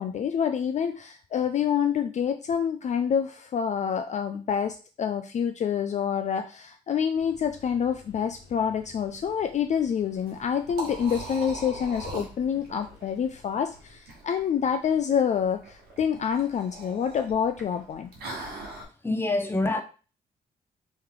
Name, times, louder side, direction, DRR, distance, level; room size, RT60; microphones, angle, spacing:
voice 1, 0.0-18.1, left 7 dB, 45° left, 0.4 m, -27 dB
sound 1, 7.1-14.0, left 3 dB, 80° left, 1.1 m, -54 dB
Liquid, 10.2-18.8, right 2 dB, 85° right, 1.2 m, -41 dB
voice 2, 19.0-19.8, left 2 dB, 15° left, 0.7 m, -25 dB
3.1 x 3.1 x 3.6 m
supercardioid pair, 60°, 16 cm